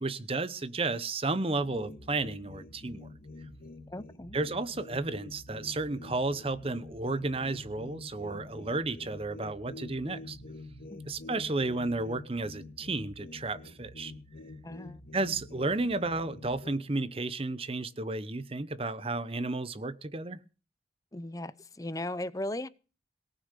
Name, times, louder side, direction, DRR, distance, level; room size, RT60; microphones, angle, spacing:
voice 1, 0.0-3.1 4.3-10.4 11.0-14.1 15.1-20.4, right 3 dB, 30° right, 0.8 m, -32 dB
sound 1, 1.6-16.8, left 2 dB, 50° left, 2.7 m, -47 dB
voice 2, 3.9-4.4 10.9-11.0 14.6-15.0 21.1-22.7, left 1 dB, 20° left, 0.6 m, -37 dB
18.0 x 6.6 x 8.2 m
head